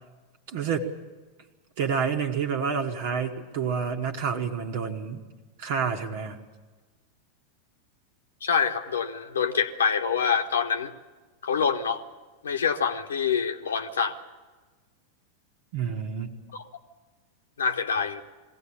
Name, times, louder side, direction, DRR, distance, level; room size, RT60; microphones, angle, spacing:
voice 1, 0.5-0.9 1.8-5.2 5.6-6.4 15.7-16.3, right 6 dB, 50° right, 3 dB, 1.6 m, -28 dB
voice 2, 8.4-10.9 11.4-12.0 12.4-14.1 16.5-16.7 17.6-18.2, left 6 dB, 70° left, 8 dB, 1.3 m, -26 dB
21.5 x 17.0 x 8.7 m, 1.3 s
figure-of-eight pair, 90°, 0 cm